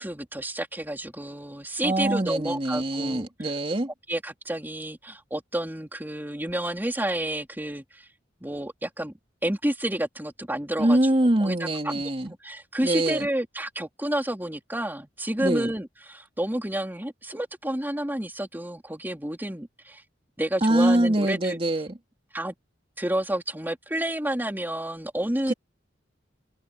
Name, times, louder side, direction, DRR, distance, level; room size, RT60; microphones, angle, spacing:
voice 1, 0.0-3.5 4.1-8.1 8.4-9.1 9.4-11.0 11.4-12.0 12.4-20.0 20.4-21.6 22.3-22.5 23.0-25.5, right 1 dB, 10° right, 3.1 m, -30 dB
voice 2, 1.8-3.9 10.8-12.3 12.8-13.3 15.4-15.7 20.6-21.9 25.5-25.6, right 1 dB, 30° right, 2.8 m, -24 dB
open air
head